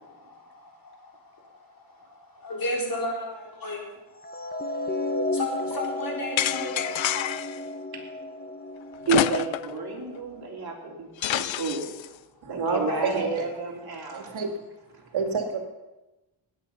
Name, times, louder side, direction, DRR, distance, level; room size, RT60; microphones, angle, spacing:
voice 1, 0.0-1.6 1.9-3.8 5.3-7.4 12.7-13.0, left 1 dB, 45° left, -1 dB, 4.1 m, -34 dB
sound 1, 4.2-10.5, left 2 dB, 20° left, 0.8 m, -33 dB
sound 2, 6.4-7.6 9.1-9.8 10.2-10.3 11.2-12.1, left 12 dB, 80° left, 0.6 m, -27 dB
voice 2, 9.1-11.9 12.5-14.4, right 4 dB, 55° right, -1 dB, 3.4 m, -30 dB
voice 3, 12.4-13.5 14.1-14.7 15.1-15.6, right 4 dB, 85° right, 3 dB, 2.2 m, -29 dB
19.5 x 9.2 x 5.5 m, 1.1 s
wide cardioid pair, 125°, 46 cm